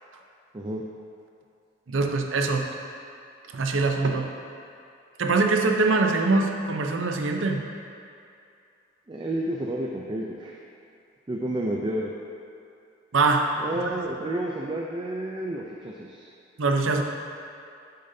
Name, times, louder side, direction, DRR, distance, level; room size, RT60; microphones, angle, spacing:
voice 1, 1.9-2.7 3.5-4.3 5.2-7.6 13.1-13.5 16.6-17.0, right 3 dB, 85° right, 3 dB, 0.6 m, -23 dB
voice 2, 9.1-10.6 11.3-12.1 13.6-16.3, right 1 dB, 25° right, -1 dB, 0.4 m, -30 dB
7.9 x 6.6 x 2.7 m, 2.5 s
head